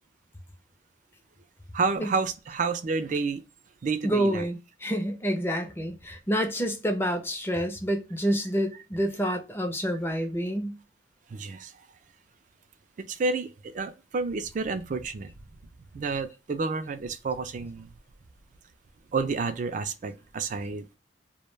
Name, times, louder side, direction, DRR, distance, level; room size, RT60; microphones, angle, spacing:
voice 1, 1.7-3.4 3.8-4.5 11.3-11.7 13.1-15.3 15.9-17.9 19.1-21.0, right 4 dB, 45° right, 0.3 m, -30 dB
voice 2, 4.0-10.8, equal, 15° left, 0.5 m, -28 dB
2.2 x 2.1 x 3.1 m
head